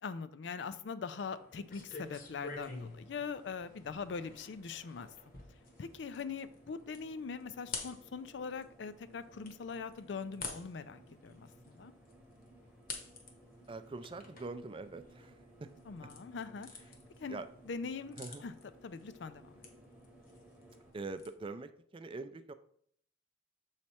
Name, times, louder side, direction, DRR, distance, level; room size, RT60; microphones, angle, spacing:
voice 1, 0.0-5.1 5.8-11.9 15.9-16.7 17.2-18.2 18.4-18.5 18.8-19.6, left 5 dB, 70° left, 13 dB, 0.4 m, -42 dB
sound 1, 1.3-20.9, right 1 dB, 10° right, 1.0 m, -60 dB
sound 2, 1.7-21.3, left 4 dB, 50° left, 1.0 m, -51 dB
voice 2, 13.7-15.7 17.3-17.5 18.2-18.4 20.9-22.5, right 3 dB, 30° right, 11 dB, 0.4 m, -43 dB
7.1 x 3.3 x 4.3 m, 0.64 s
head